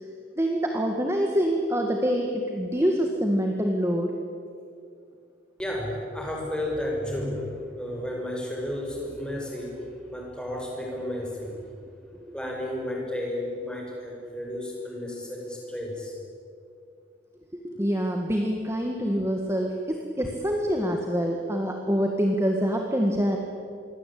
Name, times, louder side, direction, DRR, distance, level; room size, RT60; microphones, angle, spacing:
voice 1, 0.4-4.1 17.6-23.4, equal, 15° right, 2 dB, 1.8 m, -25 dB
voice 2, 5.6-11.5 12.3-16.1, left 1 dB, 5° left, -1 dB, 6.0 m, -32 dB
27.0 x 22.0 x 8.6 m, 2.4 s
head